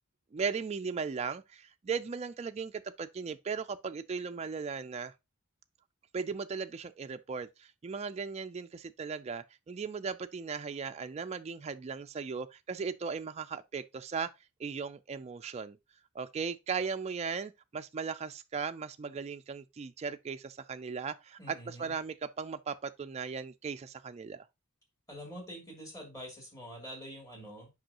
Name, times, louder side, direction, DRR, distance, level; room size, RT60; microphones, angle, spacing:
voice 1, 0.3-5.1 6.1-14.3 14.6-15.8 16.1-24.5, right 5 dB, 30° right, 0.3 m, -37 dB
voice 2, 21.4-21.9 25.1-27.7, equal, 15° left, 2.8 m, -46 dB
7.7 x 5.4 x 2.9 m
head